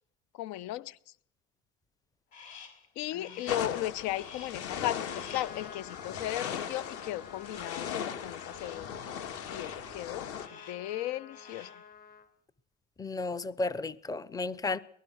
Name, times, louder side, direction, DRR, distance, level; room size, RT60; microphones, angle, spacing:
voice 1, 0.3-1.0 3.0-8.9 9.5-11.7, left 14 dB, 65° left, 1.0 m, -36 dB
Crow, 2.3-2.9 3.2-3.8 4.1-4.7 5.0-5.6 7.5-8.0 8.4-8.9 9.4-9.9 10.3-10.9 11.2-11.9, left 6 dB, 85° left, 5.9 m, -51 dB
voice 2, 3.1-3.4 13.0-14.8, left 3 dB, 10° left, 0.8 m, -34 dB
sound 1, 3.5-10.5, left 8 dB, 50° left, 2.4 m, -38 dB
Trumpet, 5.0-12.3, left 6 dB, 30° left, 4.4 m, -51 dB
23.5 x 20.0 x 6.4 m
supercardioid pair, 110°, 30 cm